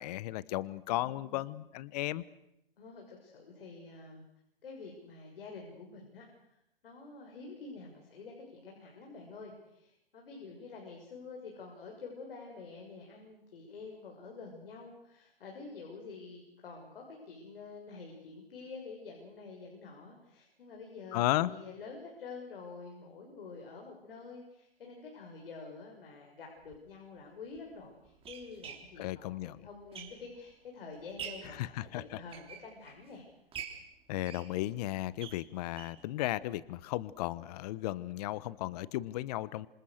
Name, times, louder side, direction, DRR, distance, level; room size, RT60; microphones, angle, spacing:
voice 1, 0.0-2.2 21.1-21.5 29.0-29.7 31.6-32.0 34.1-39.7, left 16 dB, 45° left, 19 dB, 1.0 m, -35 dB
voice 2, 0.8-1.5 2.8-4.2 4.6-33.3, left 4 dB, 70° left, 1 dB, 6.7 m, -48 dB
sound 1, 26.6-26.8 27.6-30.5 30.9-31.6 32.1-33.1 33.5-36.1 36.4-36.5 36.8-36.9 37.3-37.4, right 7 dB, 20° right, 3.8 m, -47 dB
27.5 x 26.5 x 6.6 m, 0.81 s
hypercardioid pair, 125°, 29 cm